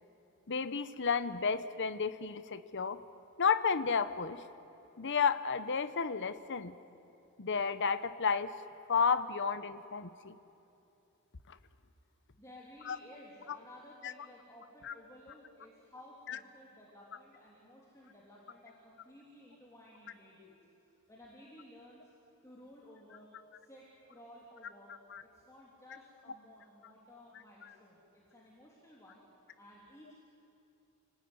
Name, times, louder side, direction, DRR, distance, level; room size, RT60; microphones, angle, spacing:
voice 1, 0.5-3.0 3.4-4.4 5.0-6.7 7.4-8.5 8.9-10.4 11.5-11.6 12.9-13.0 14.8-14.9 16.3-16.4 25.1-25.2, left 5 dB, 55° left, 13 dB, 0.9 m, -32 dB
voice 2, 12.4-20.6 21.1-22.1 22.4-23.3 23.5-25.0 25.2-29.2 29.6-30.1, left 1 dB, 15° left, -5 dB, 3.2 m, -56 dB
30.0 x 18.5 x 9.7 m, 2.8 s
head